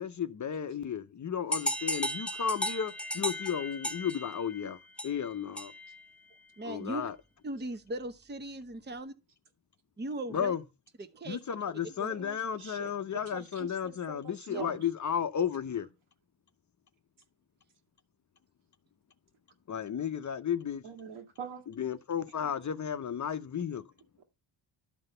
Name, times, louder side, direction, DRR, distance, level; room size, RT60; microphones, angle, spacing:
voice 1, 0.0-4.8 5.0-5.7 6.6-7.1 10.3-10.6 11.3-15.9 19.7-20.8 21.8-23.8, left 8 dB, 40° left, 0.7 m, -33 dB
sound 1, 1.5-6.0, equal, ahead, 1.0 m, -35 dB
voice 2, 6.6-7.0 7.4-9.1 10.0-10.6 11.0-11.4 12.0-12.1 14.5-14.8, right 1 dB, 20° right, 1.0 m, -38 dB
voice 3, 12.1-14.8 20.8-21.6, right 6 dB, 80° right, 2.7 m, -44 dB
12.0 x 4.0 x 6.5 m
cardioid pair, 105°, 47 cm